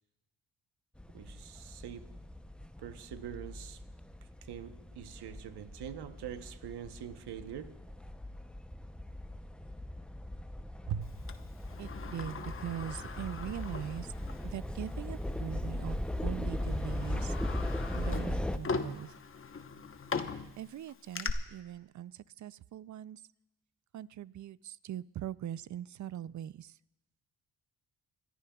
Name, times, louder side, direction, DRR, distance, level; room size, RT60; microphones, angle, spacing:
sound 1, 1.0-18.6, left 1 dB, ahead, 0.6 m, -39 dB
voice 1, 1.1-2.1 2.8-3.8 4.4-7.8 10.9-11.2, right 9 dB, 70° right, 10 dB, 1.0 m, -43 dB
Sliding door, 11.3-14.5 14.9-15.0 15.9-16.1 16.6-21.3, left 4 dB, 30° left, 0.9 m, -40 dB
voice 2, 11.8-14.1 14.4-17.3 17.9-19.1 20.6-23.2 23.9-26.8, right 11 dB, 45° right, 19 dB, 0.5 m, -41 dB
28.0 x 14.0 x 2.3 m, 0.97 s
cardioid pair, 70°, 41 cm